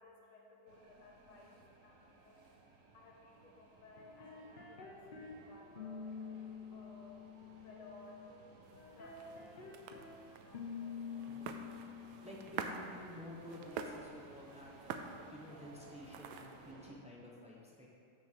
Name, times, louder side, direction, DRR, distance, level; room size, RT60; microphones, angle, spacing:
voice 1, 0.0-8.2 8.8-11.5, left 3 dB, 80° left, -1 dB, 2.1 m, -60 dB
sound 1, 0.7-16.9, right 3 dB, 50° right, 1.0 m, -60 dB
sound 2, 4.0-5.4 5.8-8.3 8.8-10.1 10.5-12.5, left 6 dB, 65° left, 0.5 m, -48 dB
sound 3, 8.6-16.7, right 6 dB, 75° right, 1.4 m, -48 dB
voice 2, 11.2-11.5 12.2-15.0 15.3-17.9, left 1 dB, 10° right, -3 dB, 0.4 m, -52 dB
7.1 x 6.4 x 6.7 m, 2.2 s
omnidirectional pair, 2.3 m